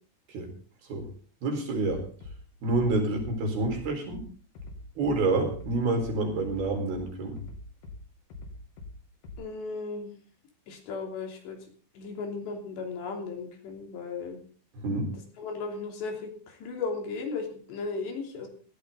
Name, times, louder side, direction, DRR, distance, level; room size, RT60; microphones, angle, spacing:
voice 1, 1.4-2.0 2.6-4.2 5.0-7.4 14.8-15.1, right 2 dB, 60° right, 3 dB, 6.1 m, -28 dB
Bass drum, 1.9-2.3 2.7-3.3 3.6-4.2 4.6-5.2 5.5-6.1 6.4-7.0 7.4-8.0 8.3-8.9 9.2-9.3, left 3 dB, 55° left, 3.7 m, -42 dB
voice 2, 9.4-10.1 10.7-11.6 12.0-14.4 15.4-18.5, left 4 dB, 80° left, 2 dB, 5.3 m, -36 dB
17.0 x 15.0 x 3.9 m, 0.40 s
omnidirectional pair, 4.9 m